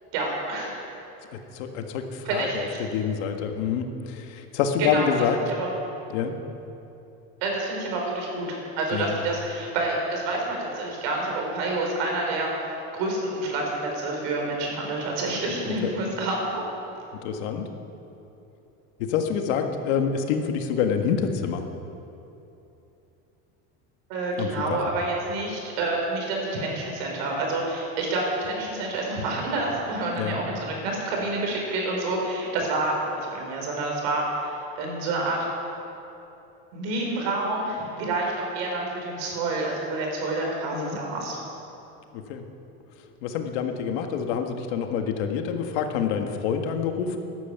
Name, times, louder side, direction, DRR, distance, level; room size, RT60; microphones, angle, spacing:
voice 1, 0.1-0.7 2.3-2.8 4.8-5.1 5.5-5.7 7.4-8.5 8.8-12.5 12.9-16.7 24.1-35.4 36.7-41.4, right 2 dB, 65° right, 0 dB, 5.0 m, -28 dB
voice 2, 1.3-5.4 6.1-6.3 8.9-9.2 15.3-15.4 15.8-15.9 17.2-17.7 19.0-21.6 24.4-24.8 30.2-30.4 40.7-41.0 42.1-42.4 43.2-47.2, left 7 dB, 90° left, 5 dB, 1.8 m, -27 dB
14.0 x 11.5 x 9.1 m, 2.9 s
cardioid pair, 175°, 33 cm